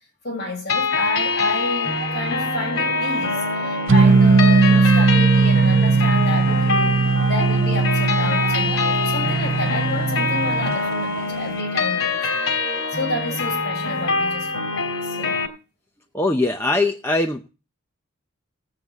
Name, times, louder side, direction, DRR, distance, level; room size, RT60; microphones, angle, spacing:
voice 1, 0.2-12.4 12.9-15.4, left 2 dB, 50° left, 6.1 m, -30 dB
sound 1, 0.7-15.5, left 4 dB, 90° left, 2.8 m, -24 dB
sound 2, 1.8-14.6, equal, 45° right, 1.1 m, -37 dB
sound 3, 3.9-10.7, right 4 dB, 65° right, 0.6 m, -18 dB
voice 2, 16.1-17.5, left 2 dB, 10° left, 0.6 m, -21 dB
19.5 x 8.2 x 3.5 m
head